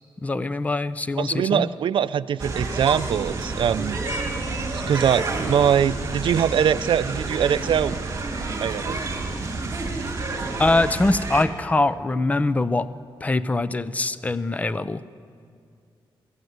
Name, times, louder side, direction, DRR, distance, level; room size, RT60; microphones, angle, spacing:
voice 1, 0.2-1.7 10.6-12.9 13.2-15.0, left 2 dB, 15° left, 15 dB, 0.5 m, -23 dB
voice 2, 1.2-4.0 4.9-8.0 8.6-9.0, right 8 dB, 65° right, 14 dB, 0.5 m, -22 dB
sound 1, 2.4-11.4, right 3 dB, 30° right, 2.7 m, -29 dB
23.5 x 14.5 x 9.5 m, 2.4 s
wide cardioid pair, 155°, 9 cm